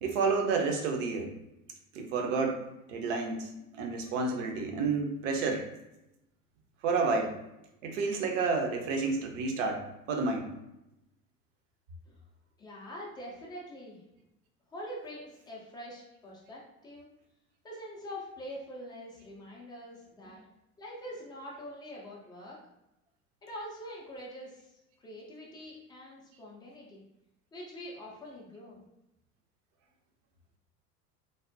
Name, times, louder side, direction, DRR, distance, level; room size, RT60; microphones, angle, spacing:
voice 1, 0.0-1.3 1.9-2.6 2.9-3.5 3.8-5.7 6.8-7.3 7.8-10.5, right 4 dB, 55° right, 2 dB, 0.7 m, -30 dB
voice 2, 12.6-14.0 14.7-17.1 17.6-20.4 20.8-22.6 23.4-24.7 25.0-27.0 27.5-28.8, equal, 10° left, -3 dB, 0.4 m, -44 dB
3.3 x 2.1 x 2.5 m, 0.90 s
figure-of-eight pair, 75°, 46 cm